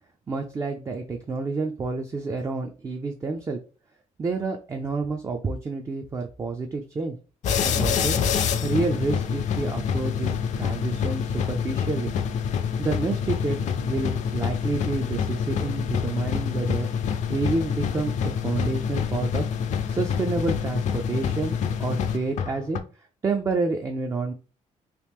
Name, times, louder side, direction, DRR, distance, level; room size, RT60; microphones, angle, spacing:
voice 1, 0.3-3.6 4.2-7.2 7.6-8.2 8.6-12.1 12.8-16.9 17.3-19.5 19.9-22.8 23.2-24.3, right 3 dB, 20° right, 4 dB, 0.3 m, -29 dB
sound 1, 7.4-22.8, left 7 dB, 65° left, 0.4 m, -27 dB
3.0 x 2.8 x 3.4 m, 0.35 s
wide cardioid pair, 170°, 13 cm